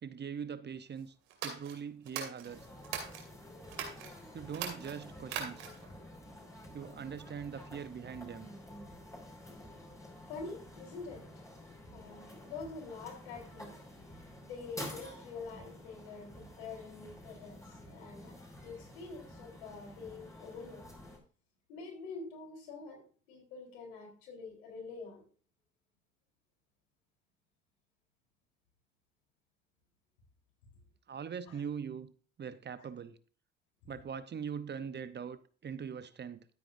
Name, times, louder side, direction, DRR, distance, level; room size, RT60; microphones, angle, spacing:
voice 1, 0.0-1.1 1.4-2.7 4.3-5.7 6.7-8.5 31.1-32.1 32.4-33.2 33.8-36.5, right 7 dB, 35° right, 0.8 m, -42 dB
sound 1, 1.3-3.3 3.7-4.1 4.5-5.9, right 8 dB, 80° right, 2.5 m, -40 dB
sound 2, 2.5-21.2, left 1 dB, 10° left, 5.5 m, -50 dB
voice 2, 9.8-20.8 21.7-25.2 31.5-31.6, left 4 dB, 85° left, 4.0 m, -47 dB
13.0 x 8.8 x 2.6 m
hypercardioid pair, 65°, 30 cm